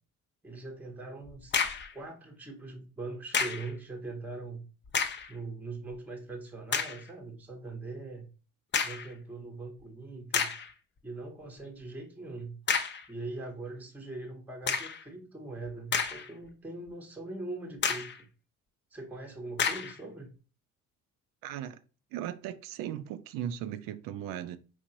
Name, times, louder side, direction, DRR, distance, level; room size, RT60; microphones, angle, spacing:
voice 1, 0.4-1.5 1.9-4.6 5.3-8.3 8.8-10.5 11.0-12.6 13.1-18.3 18.9-20.3, right 3 dB, 5° right, 0.8 m, -41 dB
sound 1, 1.3-1.9 3.3-3.7 4.8-5.3 5.9-6.0 6.7-7.0 8.7-9.1 9.8-9.9 10.3-10.7 12.7-13.1 14.7-15.0 15.7-16.5 16.9-17.0 17.8-18.2 19.6-20.0, left 6 dB, 25° left, 0.5 m, -30 dB
voice 2, 21.4-21.8 22.1-24.6, right 10 dB, 55° right, 0.5 m, -37 dB
4.7 x 2.9 x 2.8 m
figure-of-eight pair, 50°, 41 cm